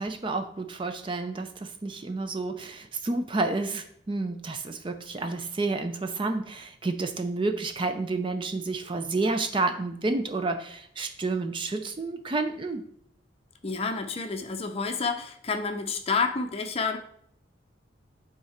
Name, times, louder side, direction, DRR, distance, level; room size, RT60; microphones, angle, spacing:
voice 1, 0.0-12.8, right 3 dB, 25° right, 7 dB, 0.4 m, -30 dB
voice 2, 13.6-17.0, left 4 dB, 30° left, 6 dB, 0.6 m, -29 dB
8.9 x 3.7 x 4.3 m, 0.68 s
head